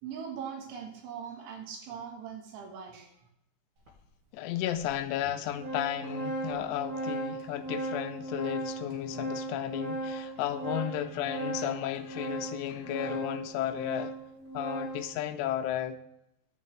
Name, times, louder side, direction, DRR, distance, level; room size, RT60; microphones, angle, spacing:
voice 1, 0.0-3.3, right 7 dB, 80° right, 3.9 m, -41 dB
Organ, 3.9-4.0 4.8-4.9 5.2-15.1, right 2 dB, 55° right, 2.7 m, -37 dB
voice 2, 4.3-14.1 14.5-16.0, left 11 dB, 85° left, 2.4 m, -33 dB
15.0 x 6.5 x 3.2 m
omnidirectional pair, 5.5 m